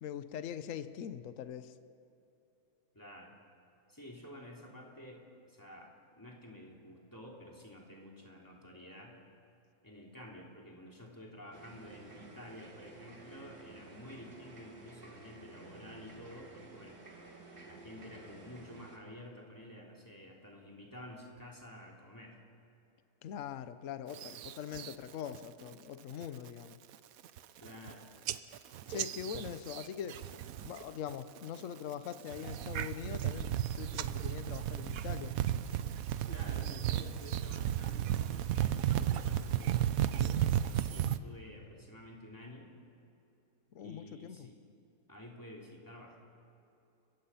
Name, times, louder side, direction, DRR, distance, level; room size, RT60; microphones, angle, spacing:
voice 1, 0.0-1.8 23.2-26.8 28.9-30.3 30.6-35.4 43.7-44.5, left 9 dB, 60° left, 12 dB, 1.1 m, -42 dB
voice 2, 2.9-3.3 3.9-9.2 9.8-17.0 17.6-22.4 27.6-28.0 36.3-42.7 43.8-44.6 45.1-46.2, left 1 dB, 10° left, -2 dB, 3.1 m, -51 dB
sound 1, 11.5-19.0, right 3 dB, 90° right, 3.1 m, -53 dB
sound 2, 24.1-24.9 25.3-25.7 26.1-26.5 26.9-27.0 27.2-27.9 28.3-30.8 31.1-31.6 32.1-41.2, right 11 dB, 70° right, 1.1 m, -34 dB
29.0 x 16.0 x 5.7 m, 2.8 s
omnidirectional pair, 1.6 m